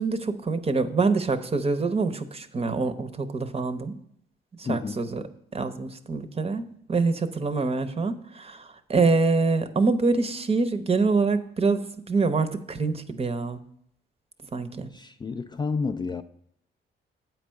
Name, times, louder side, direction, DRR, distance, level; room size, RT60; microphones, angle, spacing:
voice 1, 0.0-3.9 4.6-5.2 5.5-13.6 14.5-14.9, right 4 dB, 30° right, 0.7 m, -25 dB
voice 2, 4.6-5.0 14.9-16.2, left 4 dB, 20° left, 0.3 m, -30 dB
8.3 x 4.6 x 6.3 m
cardioid pair, 90°, 20 cm